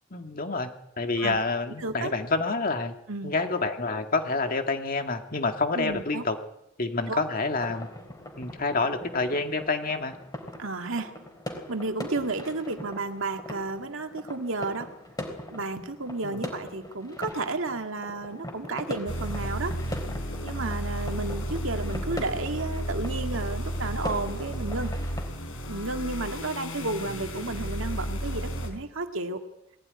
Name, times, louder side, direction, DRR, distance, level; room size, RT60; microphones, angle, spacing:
voice 1, 0.1-0.7 1.0-2.9 3.2-6.4 6.8-7.9 8.4-10.1 16.2-16.4 26.8-26.9, left 3 dB, 45° left, 5 dB, 2.0 m, -28 dB
voice 2, 1.8-2.1 3.1-3.3 5.7-6.2 7.1-7.2 10.6-11.2 11.7-15.0 15.5-19.8 20.4-24.9 25.7-29.4, right 3 dB, 75° right, 5 dB, 2.0 m, -32 dB
sound 1, 7.6-25.3, left 1 dB, 20° left, 4.0 m, -41 dB
sound 2, 19.1-28.7, equal, 75° left, 4.7 m, -33 dB
21.0 x 16.0 x 9.7 m, 0.87 s
head